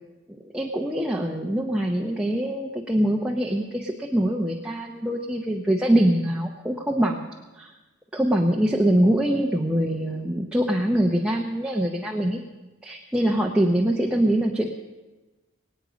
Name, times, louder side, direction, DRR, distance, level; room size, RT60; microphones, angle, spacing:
voice 1, 0.5-7.2 7.5-7.7 8.1-12.4 12.8-14.7, right 1 dB, 5° right, 0 dB, 0.9 m, -23 dB
23.0 x 9.2 x 5.2 m, 1.1 s
head